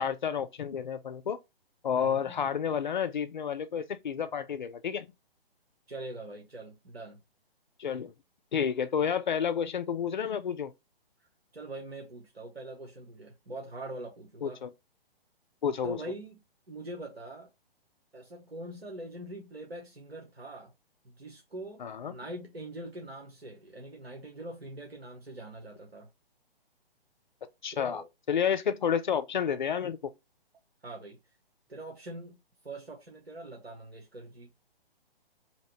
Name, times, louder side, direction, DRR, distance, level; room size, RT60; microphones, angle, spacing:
voice 1, 0.0-1.4 1.8-5.1 7.8-8.1 8.5-10.7 14.4-14.7 15.6-16.0 21.8-22.1 27.6-30.1, left 7 dB, 50° left, 0.5 m, -30 dB
voice 2, 1.9-2.4 5.9-7.2 11.5-14.6 15.8-16.4 16.7-17.5 18.1-20.7 21.0-21.8 22.1-26.1 27.7-28.1 30.8-31.2 31.7-32.4 32.6-34.5, right 1 dB, 85° right, 0.8 m, -43 dB
2.8 x 2.7 x 3.2 m
figure-of-eight pair, 130°, 30 cm